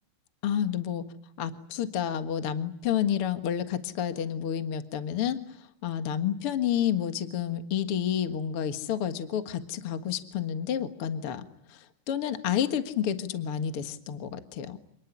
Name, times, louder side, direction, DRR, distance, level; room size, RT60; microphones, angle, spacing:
voice 1, 0.4-1.0 1.4-5.6 5.8-14.8, left 9 dB, 50° left, 9 dB, 2.1 m, -30 dB
28.0 x 19.5 x 10.0 m, 0.72 s
omnidirectional pair, 3.7 m